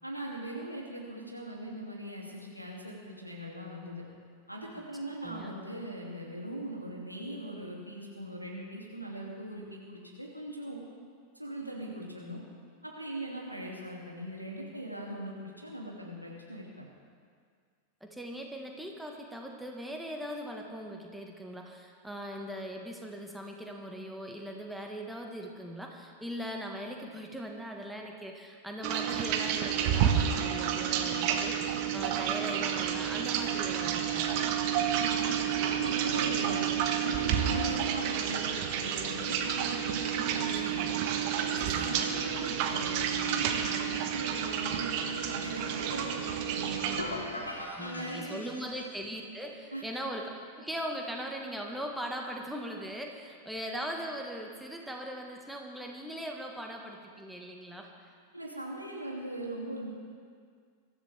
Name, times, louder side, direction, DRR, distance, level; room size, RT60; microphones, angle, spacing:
voice 1, 0.0-4.0 4.5-10.8 11.4-12.4 12.8-16.9 34.9-36.6 37.0-40.9 41.3-47.3 47.8-48.6 49.7-49.9 58.3-59.9, right 1 dB, 90° right, -3 dB, 3.0 m, -40 dB
voice 2, 5.2-5.5 18.0-34.4 41.7-42.1 47.7-50.3 50.6-58.1, equal, ahead, 1 dB, 1.8 m, -40 dB
sound 1, 28.8-47.0, right 8 dB, 45° right, 1.4 m, -30 dB
sound 2, 47.0-49.1, left 1 dB, 80° left, 2.4 m, -40 dB
23.5 x 14.0 x 3.7 m, 2.1 s
figure-of-eight pair, 90°, 0 cm